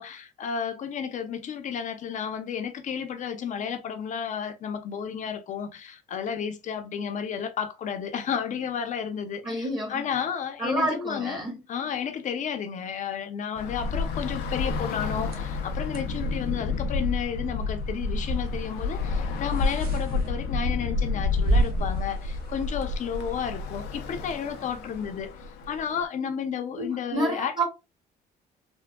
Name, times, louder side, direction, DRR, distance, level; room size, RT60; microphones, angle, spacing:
voice 1, 0.0-11.4 11.7-25.3 25.7-27.5, left 7 dB, 45° left, 0.6 m, -32 dB
voice 2, 9.4-10.0 10.6-11.6 26.7-27.6, right 1 dB, 25° right, 1.5 m, -29 dB
Bus / Traffic noise roadway noise, 13.6-26.0, left 4 dB, 85° left, 0.6 m, -30 dB
sound 1, 15.1-23.4, right 2 dB, 65° right, 0.9 m, -34 dB
3.5 x 2.2 x 2.2 m
cardioid pair, 110°, 17 cm